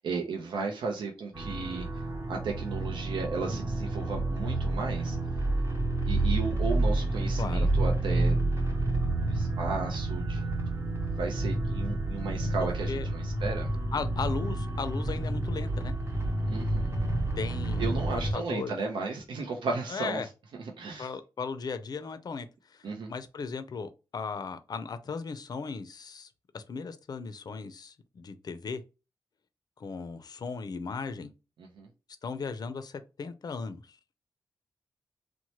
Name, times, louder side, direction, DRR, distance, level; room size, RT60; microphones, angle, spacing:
voice 1, 0.0-1.9 2.3-5.2 6.1-8.4 8.9-9.0 9.3-10.5 11.2-13.7 16.4-16.9 17.8-20.2 20.6-21.1 22.8-23.1 31.6-31.9, right 4 dB, 85° right, 0.6 m, -34 dB
sound 1, 1.3-18.3, right 2 dB, 35° right, 0.9 m, -29 dB
voice 2, 7.4-7.7 12.6-13.1 13.9-15.9 17.4-18.8 19.9-20.3 21.0-28.8 29.8-31.3 32.2-34.0, left 5 dB, 55° left, 0.4 m, -37 dB
3.0 x 2.1 x 2.8 m
cardioid pair, 65°, 8 cm